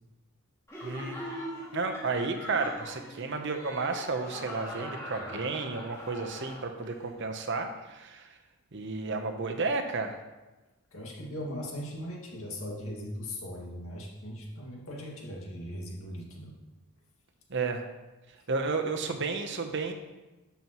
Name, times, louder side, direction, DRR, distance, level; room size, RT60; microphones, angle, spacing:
Laughter, 0.7-7.0, equal, 15° left, 1.9 m, -42 dB
voice 1, 0.8-1.2 1.7-8.3 8.7-10.2 17.5-17.8 18.5-19.9, right 4 dB, 55° right, 5 dB, 0.9 m, -32 dB
voice 2, 10.9-16.6, equal, 70° left, -2 dB, 2.1 m, -39 dB
11.0 x 7.2 x 3.1 m, 1.1 s
head